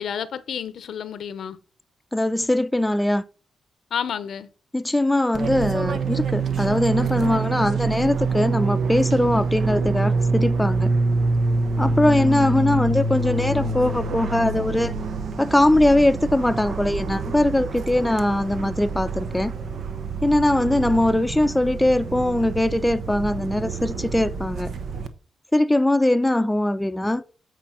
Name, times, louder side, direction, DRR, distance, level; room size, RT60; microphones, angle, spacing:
voice 1, 0.0-1.6 3.9-4.5, left 8 dB, 75° left, 0.7 m, -30 dB
voice 2, 2.1-3.2 4.7-10.9 11.8-14.9 15.4-19.5 20.2-24.7 25.5-27.2, left 1 dB, 10° left, 0.6 m, -21 dB
Fixed-wing aircraft airplane, 5.3-25.1, right 3 dB, 70° right, 1.0 m, -26 dB
8.2 x 4.5 x 5.7 m
cardioid pair, 60°, 0 cm